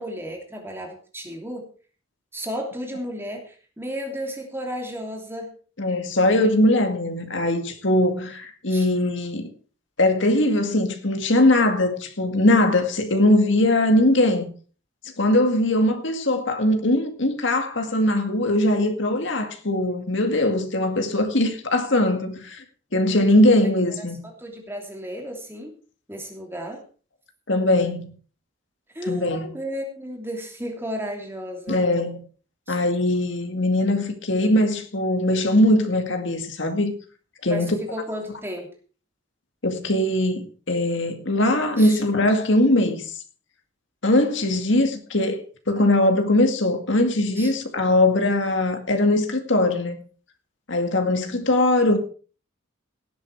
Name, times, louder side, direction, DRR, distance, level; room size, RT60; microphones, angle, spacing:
voice 1, 0.0-1.6 2.3-5.5 8.7-8.8 15.7-15.9 24.4-25.7 26.1-26.8 28.9-31.8 32.7-32.8 37.5-38.7 41.8-42.0 47.4-47.5, equal, 10° right, 2.9 m, -33 dB
voice 2, 5.8-9.5 10.0-14.5 15.2-22.6 22.9-24.2 27.5-28.1 29.1-29.5 31.7-32.2 32.7-36.9 37.4-37.7 39.6-43.1 44.0-50.0 50.7-52.0, left 1 dB, 65° left, 2.0 m, -21 dB
17.5 x 8.4 x 4.7 m
head